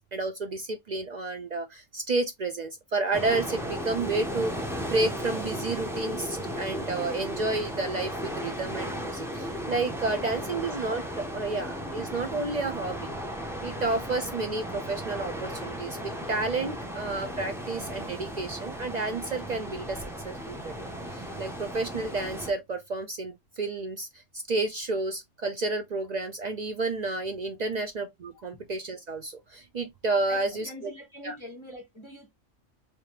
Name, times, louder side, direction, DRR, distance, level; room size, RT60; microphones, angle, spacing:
voice 1, 0.1-13.1 13.6-30.9 31.2-31.4, right 3 dB, 55° right, 0.5 m, -31 dB
sound 1, 3.1-22.5, equal, 5° right, 0.5 m, -35 dB
voice 2, 30.3-32.3, equal, 25° left, 0.9 m, -45 dB
3.3 x 3.3 x 2.8 m
omnidirectional pair, 1.3 m